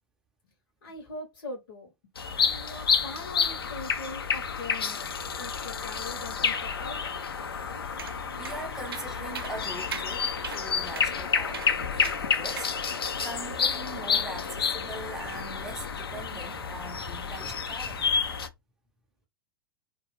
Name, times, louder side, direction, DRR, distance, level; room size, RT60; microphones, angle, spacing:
voice 1, 0.8-1.9 2.4-5.1 5.4-7.0, left 2 dB, 55° left, 0.8 m, -41 dB
sound 1, 2.2-18.5, left 6 dB, 75° left, 0.4 m, -30 dB
voice 2, 7.6-18.1, right 2 dB, 5° right, 0.5 m, -42 dB
sound 2, 8.0-8.1 8.4-8.6 8.9-9.1 9.3-9.5 9.9-10.1 10.4-10.6 10.9-11.1 11.5-11.7 12.0-12.2 12.6-12.7, right 6 dB, 70° right, 0.6 m, -38 dB
2.3 x 2.3 x 3.0 m
figure-of-eight pair, 95°, 13 cm